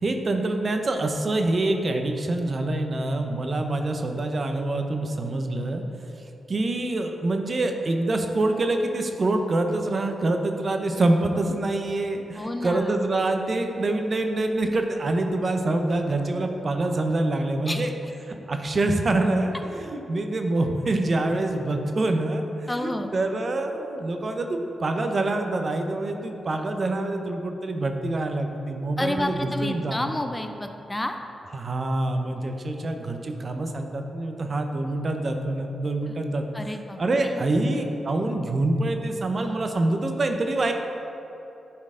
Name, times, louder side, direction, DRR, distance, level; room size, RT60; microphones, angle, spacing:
voice 1, 0.0-5.8 6.2-17.9 18.2-30.1 31.5-36.5 37.0-40.7, right 2 dB, 45° right, 5 dB, 0.7 m, -26 dB
voice 2, 12.4-12.9 17.7-17.9 22.7-23.1 29.0-31.2 36.5-37.4, left 1 dB, 15° left, 6 dB, 0.5 m, -30 dB
10.5 x 4.4 x 3.8 m, 3.0 s
cardioid pair, 75°, 0 cm